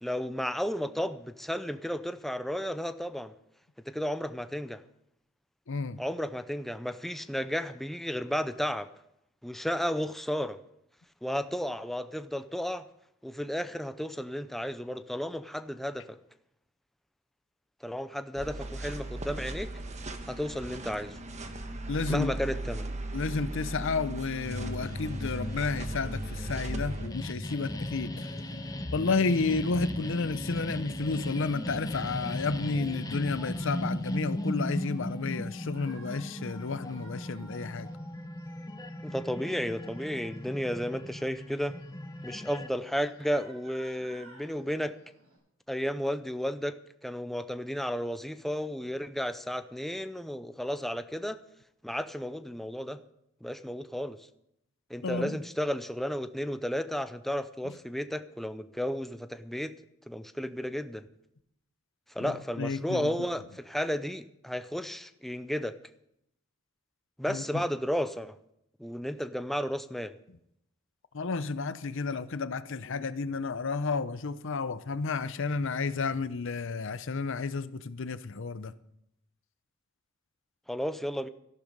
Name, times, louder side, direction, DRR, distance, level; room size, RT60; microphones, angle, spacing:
voice 1, 0.0-3.3 3.9-4.8 6.0-8.9 9.4-10.6 11.2-12.8 13.2-16.2 17.8-19.7 20.3-21.2 22.1-22.9 39.0-41.7 42.2-44.9 45.7-46.8 47.0-51.4 51.8-53.0 53.4-54.2 54.9-59.7 60.1-61.1 62.1-65.8 67.2-68.3 68.8-70.1 80.7-81.3, equal, ahead, 0.5 m, -33 dB
voice 2, 5.7-6.0 21.9-22.3 23.1-28.3 28.9-37.9 55.0-55.4 62.2-63.1 67.3-67.4 71.1-78.7, left 4 dB, 65° left, 0.7 m, -31 dB
sound 1, 18.4-27.1, right 2 dB, 35° right, 1.3 m, -38 dB
sound 2, 24.4-42.7, left 1 dB, 20° left, 0.9 m, -37 dB
Shout, 33.2-45.4, right 2 dB, 90° right, 6.0 m, -57 dB
13.5 x 12.0 x 5.2 m
head